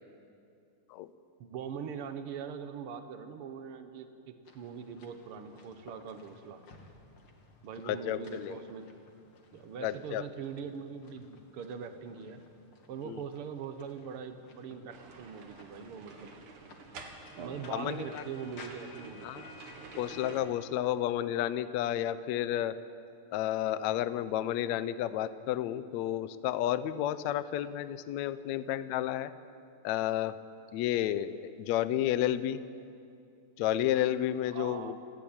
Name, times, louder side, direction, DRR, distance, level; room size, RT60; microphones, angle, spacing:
voice 1, 1.4-6.6 7.6-8.9 9.5-12.4 12.9-16.3 17.4-19.4 34.5-34.9, right 7 dB, 90° right, 8 dB, 1.2 m, -42 dB
sound 1, 4.4-20.4, left 4 dB, 40° left, 2.4 m, -56 dB
voice 2, 7.9-8.6 9.8-10.2 13.0-13.2 17.7-18.2 19.2-19.4 20.0-22.7 23.3-29.3 29.8-30.4 30.7-32.6 33.6-34.9, left 12 dB, 80° left, 13 dB, 1.6 m, -31 dB
sound 2, 14.9-20.4, right 4 dB, 60° right, 3.2 m, -49 dB
28.0 x 15.5 x 8.8 m, 2.5 s
omnidirectional pair, 4.2 m